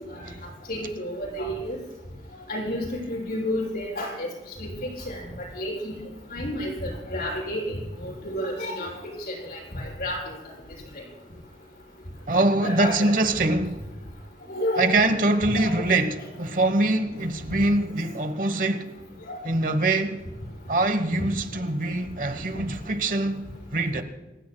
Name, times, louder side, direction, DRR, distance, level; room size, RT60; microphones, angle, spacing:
voice 1, 0.7-1.8 2.5-4.3 4.6-4.7 5.1-5.2 5.5-5.9 6.3-7.6 8.0-8.9 9.3-10.2 12.6-13.2 14.5-14.9 15.5-15.7 19.3-19.4, left 1 dB, 55° left, 6.7 m, -30 dB
voice 2, 12.3-13.8 14.8-18.9 19.4-20.2 20.7-23.4 23.7-24.0, right 2 dB, 50° right, 1.1 m, -23 dB
28.5 x 16.5 x 2.2 m
head